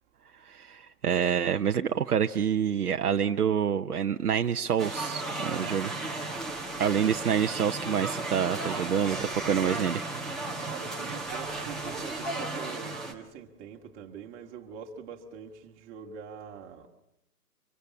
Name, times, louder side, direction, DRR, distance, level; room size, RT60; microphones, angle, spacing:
voice 1, 0.4-5.9 6.8-10.0, right 8 dB, 70° right, 0.9 m, -27 dB
sound 1, 4.8-13.1, right 2 dB, ahead, 1.4 m, -34 dB
voice 2, 5.4-5.8 10.6-16.9, right 7 dB, 20° right, 2.1 m, -44 dB
25.5 x 22.5 x 8.4 m
hypercardioid pair, 145°, 46 cm